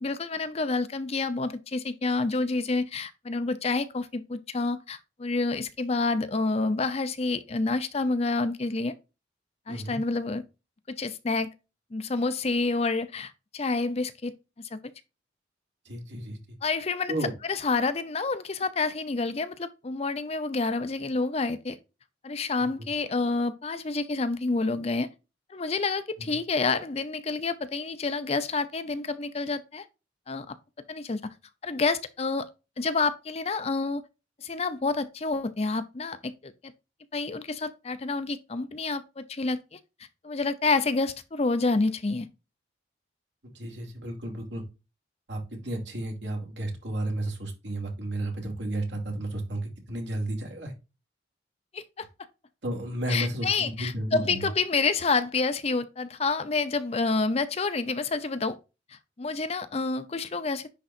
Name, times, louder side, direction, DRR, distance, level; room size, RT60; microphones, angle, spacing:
voice 1, 0.0-8.9 9.7-10.4 10.9-11.5 11.9-14.3 14.7-14.8 16.6-17.1 17.5-21.8 22.2-25.1 25.5-29.8 30.3-30.6 30.9-31.2 31.6-32.5 32.8-34.0 34.4-36.7 37.1-39.8 40.2-42.3 51.7-52.1 53.1-58.6 58.9-60.7, left 3 dB, 35° left, 0.6 m, -28 dB
voice 2, 9.7-10.0 15.8-16.6 17.1-17.3 22.6-22.9 26.2-26.4 43.5-44.6 45.3-50.7 52.6-54.5, right 1 dB, 75° right, 2.4 m, -33 dB
10.0 x 3.8 x 2.5 m
head